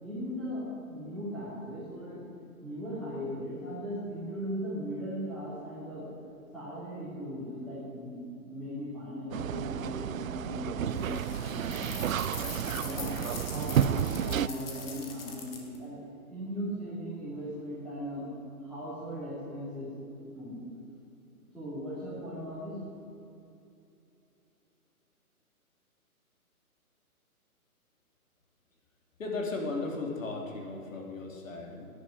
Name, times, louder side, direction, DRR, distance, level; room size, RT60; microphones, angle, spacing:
voice 1, 0.0-2.2 2.6-6.0 6.5-8.1 8.4-11.8 12.8-13.2 13.5-16.0 16.3-18.3 18.6-20.0 20.3-20.6 21.5-22.8, equal, ahead, -15 dB, 3.2 m, -38 dB
sound 1, 9.3-14.5, right 10 dB, 65° right, 0.5 m, -31 dB
sound 2, 10.9-15.8, left 5 dB, 40° left, 2.1 m, -43 dB
voice 2, 29.2-31.9, left 3 dB, 60° left, 1 dB, 3.6 m, -36 dB
10.5 x 10.0 x 9.9 m, 2.7 s
hypercardioid pair, 160°, 44 cm